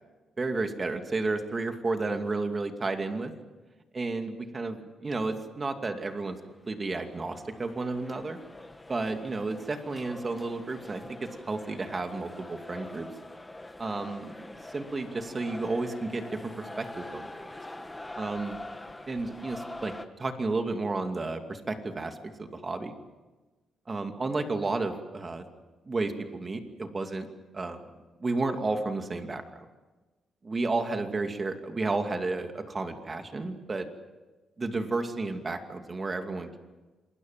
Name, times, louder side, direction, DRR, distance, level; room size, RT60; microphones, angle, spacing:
voice 1, 0.4-3.3 3.9-6.4 6.7-8.4 8.9-13.1 13.8-17.3 18.1-18.6 19.1-22.9 23.9-25.4 25.9-27.3 27.5-27.8 28.2-29.4 30.4-33.9 34.6-36.6, right 3 dB, 30° right, 6 dB, 2.5 m, -32 dB
sound 1, 6.5-20.1, left 1 dB, 15° left, 1.5 m, -44 dB
26.5 x 21.0 x 7.6 m, 1.2 s
cardioid pair, 100°, 0 cm